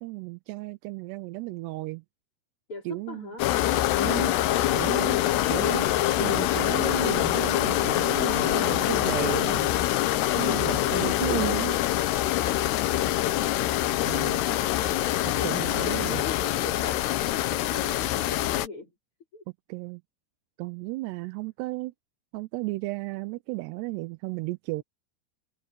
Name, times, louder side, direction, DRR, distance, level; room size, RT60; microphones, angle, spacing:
voice 1, 0.0-2.0 2.9-3.3 4.0-4.3 4.7-5.2 5.5-5.9 6.2-9.7 10.3-11.8 14.1-14.4 15.4-16.3 19.7-20.0 20.6-21.9 22.3-24.8, right 21 dB, 85° right, 2.7 m, -34 dB
voice 2, 2.7-3.5 15.9-18.9 19.3-19.4, left 3 dB, 30° left, 5.8 m, -41 dB
sound 1, 3.4-18.7, left 14 dB, 80° left, 3.1 m, -25 dB
omnidirectional pair, 4.8 m